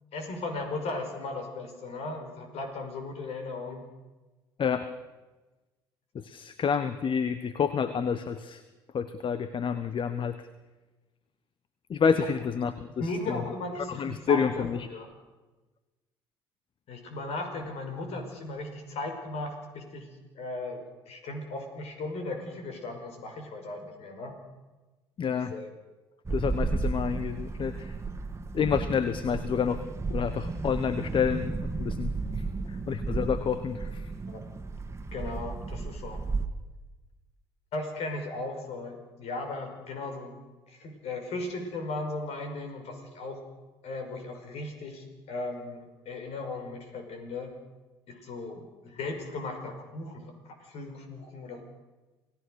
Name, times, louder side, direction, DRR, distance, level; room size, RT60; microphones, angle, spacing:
voice 1, 0.1-3.8 12.2-12.3 13.0-15.1 16.9-20.1 20.4-24.4 25.3-25.7 34.3-34.5 35.1-36.2 37.7-40.4 40.7-43.4 43.8-47.5 48.1-51.6, left 2 dB, 60° left, 5 dB, 5.5 m, -37 dB
voice 2, 6.1-8.6 8.9-10.4 11.9-13.4 13.8-14.9 25.2-25.5 26.3-27.9 28.5-29.8 30.1-34.1, left 7 dB, 45° left, 12 dB, 1.2 m, -29 dB
sound 1, 26.3-36.5, right 3 dB, 25° right, 2.0 m, -33 dB
28.0 x 17.5 x 6.5 m, 1.2 s
hypercardioid pair, 55°, 12 cm